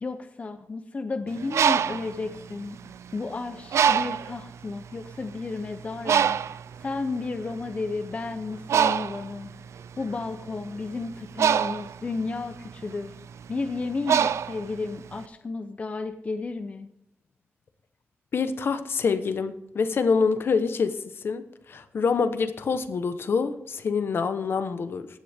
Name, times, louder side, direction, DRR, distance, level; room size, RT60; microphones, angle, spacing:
voice 1, 0.0-2.8 3.1-9.5 10.0-13.1 13.5-16.9, left 3 dB, 30° left, 8 dB, 0.6 m, -33 dB
Bird, 1.3-3.2 3.7-4.4 5.1-5.2 5.5-15.2, right 8 dB, 90° right, 0.4 m, -25 dB
voice 2, 18.3-25.1, left 5 dB, 55° left, 11 dB, 0.9 m, -26 dB
16.0 x 10.0 x 3.5 m, 0.78 s
wide cardioid pair, 180°, 5 cm